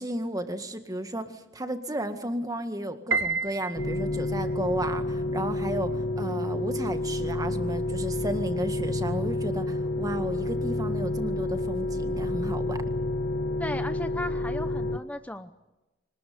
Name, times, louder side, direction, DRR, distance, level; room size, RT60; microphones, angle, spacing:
voice 1, 0.0-12.8, right 1 dB, 20° right, 7 dB, 1.9 m, -33 dB
Piano, 3.1-4.4, right 4 dB, 80° right, 1.6 m, -29 dB
sound 1, 3.8-15.0, left 2 dB, 55° left, 1.2 m, -29 dB
voice 2, 13.6-15.5, left 1 dB, 10° left, 9 dB, 0.8 m, -36 dB
25.0 x 20.0 x 9.6 m, 1.0 s
head